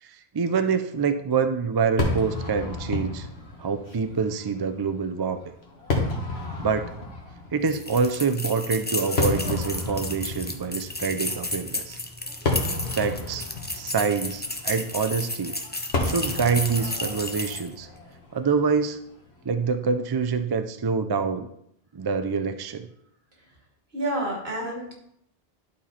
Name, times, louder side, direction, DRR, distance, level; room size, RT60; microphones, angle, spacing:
voice 1, 0.0-3.3 3.6-5.4 6.6-6.9 7.5-12.0 12.9-13.5 13.7-15.6 16.0-17.9 18.3-19.0 19.5-21.5 21.9-22.9, right 5 dB, 35° right, 9 dB, 0.4 m, -26 dB
Fireworks, 2.0-19.3, left 2 dB, 80° left, 1.7 m, -32 dB
sound 1, 7.7-17.7, left 1 dB, 10° left, 0.6 m, -32 dB
voice 2, 23.9-24.9, right 1 dB, 75° right, -2 dB, 2.5 m, -29 dB
11.5 x 4.3 x 4.2 m, 0.73 s
omnidirectional pair, 1.0 m